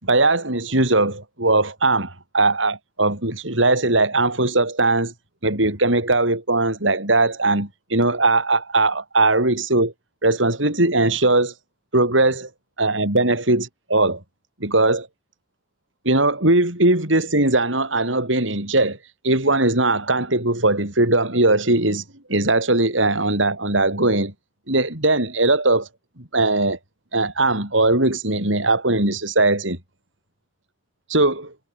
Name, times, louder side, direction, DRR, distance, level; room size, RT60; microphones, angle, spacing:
voice 1, 0.0-5.1 5.4-9.9 10.2-11.5 11.9-12.5 12.8-14.2 14.6-15.1 16.1-19.0 19.2-22.0 22.3-24.3 24.7-25.9 26.2-26.8 27.1-29.8 31.1-31.5, right 2 dB, 80° right, 6.9 m, -19 dB
head